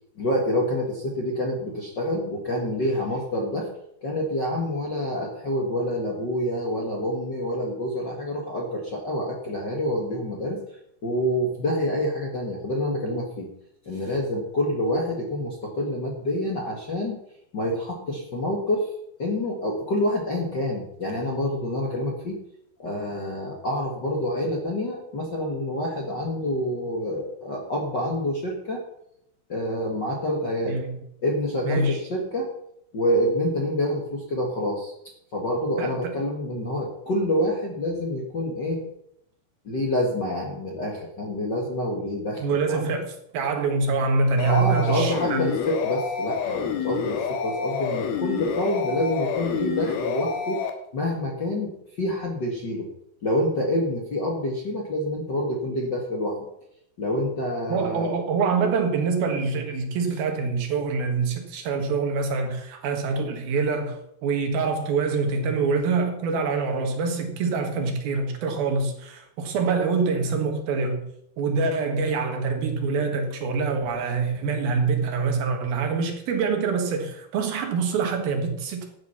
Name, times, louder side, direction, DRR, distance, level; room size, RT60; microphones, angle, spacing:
voice 1, 0.2-3.7 4.0-10.6 11.0-13.5 13.8-17.2 17.5-18.9 19.2-22.4 22.8-28.8 29.5-30.8 31.2-32.5 32.9-34.9 35.3-38.8 39.6-42.8 44.4-50.6 50.9-52.9 53.2-56.4 57.0-58.1, left 1 dB, 40° left, 1.7 m, -27 dB
voice 2, 30.7-31.0 31.6-32.0 35.8-36.1 42.4-45.5 57.7-71.1 71.4-78.9, right 4 dB, 75° right, 3.5 m, -25 dB
sound 1, 44.4-50.7, left 7 dB, 80° left, 3.2 m, -28 dB
12.5 x 8.9 x 5.7 m
omnidirectional pair, 4.4 m